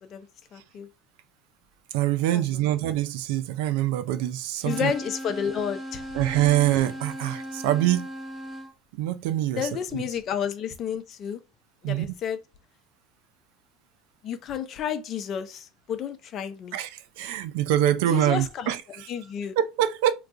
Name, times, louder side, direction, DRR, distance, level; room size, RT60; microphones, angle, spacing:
voice 1, 0.5-0.9 2.3-2.4 4.6-6.1 9.6-11.4 11.8-12.4 14.2-16.8 18.1-18.7 19.1-19.5, left 8 dB, 45° left, 0.6 m, -31 dB
voice 2, 1.9-4.9 6.1-8.1 8.9-9.8 11.8-12.1 16.7-19.1 19.6-20.1, right 13 dB, 75° right, 0.4 m, -25 dB
sound 1, 4.6-8.7, equal, 10° right, 0.8 m, -37 dB
2.3 x 2.3 x 3.7 m
supercardioid pair, 110°, 0 cm